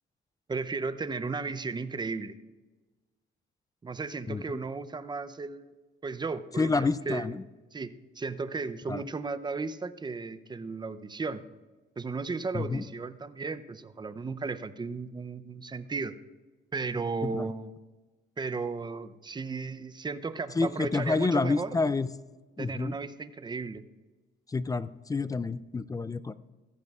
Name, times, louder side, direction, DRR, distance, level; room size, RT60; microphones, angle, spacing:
voice 1, 0.5-2.4 3.8-5.7 6.0-7.3 7.7-11.4 12.0-16.1 16.7-17.7 18.4-21.8 22.6-23.8, right 4 dB, 20° right, 13 dB, 0.6 m, -35 dB
voice 2, 6.6-7.4 8.9-9.0 12.5-12.8 17.2-17.5 20.6-22.1 22.6-23.0 24.5-26.3, left 3 dB, 20° left, 16 dB, 0.3 m, -28 dB
15.0 x 14.0 x 2.4 m, 1.2 s
cardioid pair, 90°, 20 cm